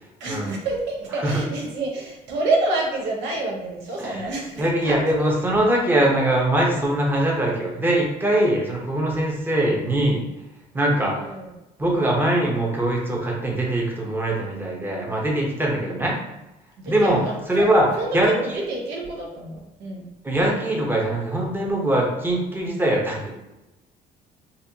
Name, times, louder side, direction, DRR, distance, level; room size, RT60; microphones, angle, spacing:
voice 1, 0.2-5.3 9.6-9.8 11.0-11.5 16.8-17.7 18.0-20.1, right 2 dB, 90° right, -1 dB, 0.9 m, -28 dB
voice 2, 4.0-10.2 10.7-11.2 11.8-16.2 16.9-17.2 17.5-17.9 18.1-18.4 20.2-23.3, right 1 dB, 10° right, -2 dB, 0.8 m, -22 dB
4.1 x 2.5 x 2.7 m, 0.96 s
cardioid pair, 110°, 17 cm